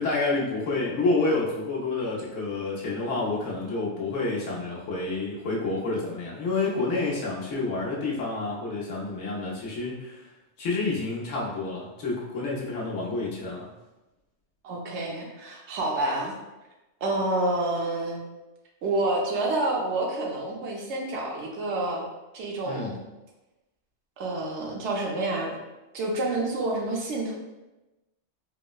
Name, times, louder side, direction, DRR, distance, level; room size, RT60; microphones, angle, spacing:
voice 1, 0.0-10.2 10.6-13.7 22.7-23.0, left 3 dB, 85° left, -4 dB, 1.1 m, -29 dB
voice 2, 14.6-16.3 17.0-18.2 18.8-22.0 22.3-23.0 24.2-25.6 25.9-27.3, right 2 dB, 70° right, -1 dB, 0.9 m, -28 dB
4.4 x 2.0 x 2.3 m, 1.0 s
omnidirectional pair, 1.3 m